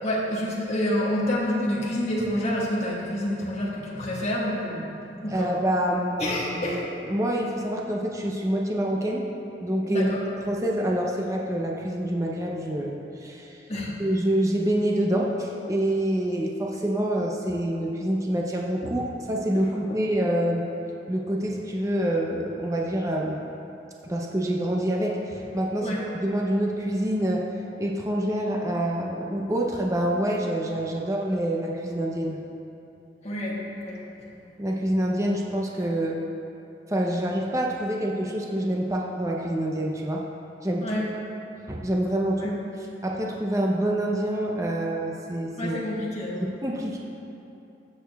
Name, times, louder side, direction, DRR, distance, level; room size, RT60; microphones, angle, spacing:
voice 1, 0.0-4.9 5.2-5.5 6.2-6.9 9.9-10.2 13.7-14.0 18.8-19.0 25.8-26.0 33.2-34.0 40.8-41.1 42.4-42.5 45.6-46.5, left 1 dB, 40° left, -6 dB, 1.5 m, -28 dB
voice 2, 5.3-6.8 7.0-9.3 9.6-10.1 10.5-20.6 21.1-23.4 24.0-27.5 27.8-32.4 34.6-36.2 36.9-40.2 40.6-41.0 41.7-42.5 43.0-45.8 46.4-47.0, right 1 dB, 20° right, -1 dB, 0.6 m, -26 dB
16.0 x 6.6 x 2.3 m, 2.8 s
head